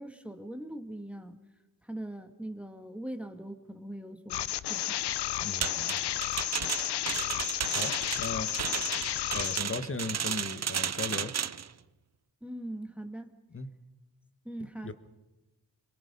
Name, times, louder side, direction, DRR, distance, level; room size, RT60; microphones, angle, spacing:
voice 1, 0.0-1.4 1.8-5.0 12.4-13.3 14.5-14.9, right 1 dB, 5° right, 6 dB, 2.0 m, -41 dB
sound 1, 4.3-9.6, left 12 dB, 70° left, 0.7 m, -32 dB
voice 2, 5.4-6.0 7.7-8.5 9.3-11.3 13.5-13.7 14.8-14.9, left 3 dB, 30° left, 10 dB, 1.6 m, -37 dB
sound 2, 5.6-11.7, right 8 dB, 40° right, 0.7 m, -33 dB
26.5 x 22.5 x 5.5 m, 1.1 s
cardioid pair, 70°, 42 cm